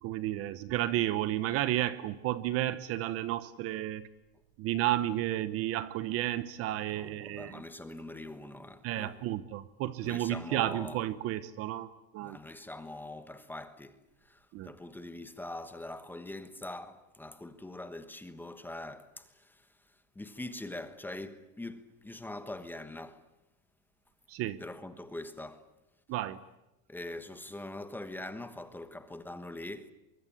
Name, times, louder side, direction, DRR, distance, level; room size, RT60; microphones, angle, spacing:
voice 1, 0.0-4.1 4.6-7.6 8.8-12.4 14.5-14.7 24.3-24.6 26.1-26.4, right 13 dB, 30° right, 0.9 m, -32 dB
voice 2, 6.9-9.3 10.0-11.0 12.2-19.7 20.1-23.2 24.6-25.7 26.9-29.9, left 2 dB, 5° left, 1.2 m, -43 dB
24.0 x 23.5 x 9.9 m
supercardioid pair, 170°, 44 cm